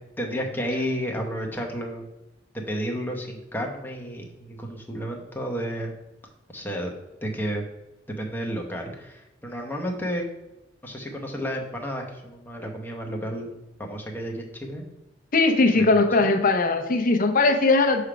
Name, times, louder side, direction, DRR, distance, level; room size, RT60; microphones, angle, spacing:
voice 1, 0.2-2.1 2.5-5.9 6.5-6.9 7.2-7.6 8.1-10.2 10.8-13.5 13.8-14.8 15.7-15.8 16.2-16.3, equal, 10° left, 1 dB, 0.9 m, -31 dB
voice 2, 15.3-18.0, left 3 dB, 45° left, 6 dB, 0.7 m, -19 dB
6.4 x 3.3 x 5.0 m, 0.97 s
head